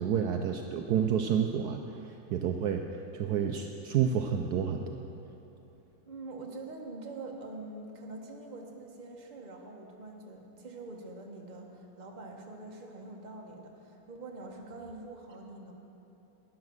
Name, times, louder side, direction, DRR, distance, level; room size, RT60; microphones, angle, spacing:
voice 1, 0.0-5.0, right 8 dB, 80° right, 4 dB, 0.9 m, -30 dB
voice 2, 6.1-15.7, right 2 dB, 30° right, 1 dB, 1.0 m, -45 dB
12.0 x 10.5 x 6.4 m, 3.0 s
omnidirectional pair, 2.3 m